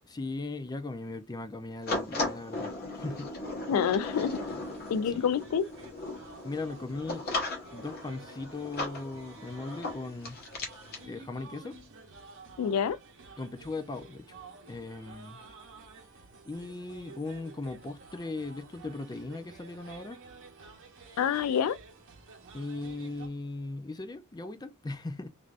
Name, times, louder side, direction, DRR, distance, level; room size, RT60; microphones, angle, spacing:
voice 1, 0.1-3.3 5.1-5.2 6.4-7.3 7.7-10.4 11.0-11.8 13.4-14.3 14.7-15.4 16.4-20.2 22.5-25.3, left 3 dB, 20° left, 0.4 m, -38 dB
sound 1, 1.9-11.0, left 2 dB, 45° left, 1.0 m, -37 dB
voice 2, 3.7-4.4 4.9-5.6 12.6-13.0 21.2-21.8, left 7 dB, 85° left, 0.3 m, -27 dB
sound 2, 4.0-23.3, right 4 dB, 60° right, 0.8 m, -52 dB
3.2 x 2.6 x 2.4 m
head